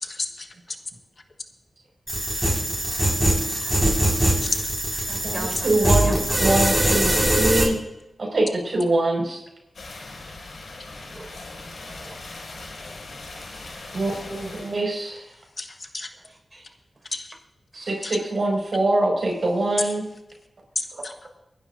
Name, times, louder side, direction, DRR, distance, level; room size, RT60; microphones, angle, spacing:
voice 1, 0.0-0.5 4.4-4.6 15.6-16.1 17.1-17.3 18.0-18.2 19.8-19.9 20.7-21.1, left 3 dB, 50° left, 6 dB, 1.3 m, -30 dB
sound 1, 2.1-7.6, right 1 dB, 15° right, 5.3 m, -22 dB
voice 2, 3.6-4.0 5.1-6.1 11.1-11.4 11.8-12.2 12.5-12.7 13.3-13.4 13.9-14.0 16.3-16.7 17.7-17.9, right 2 dB, 30° right, 1 dB, 5.5 m, -40 dB
voice 3, 5.2-7.8 8.2-9.4 13.9-15.2 17.7-20.0 20.9-21.0, right 2 dB, 65° right, 0 dB, 5.5 m, -24 dB
sound 2, 9.7-14.9, left 2 dB, 80° left, 6.3 m, -39 dB
25.5 x 11.5 x 2.7 m, 0.91 s
cardioid pair, 55°, 0 cm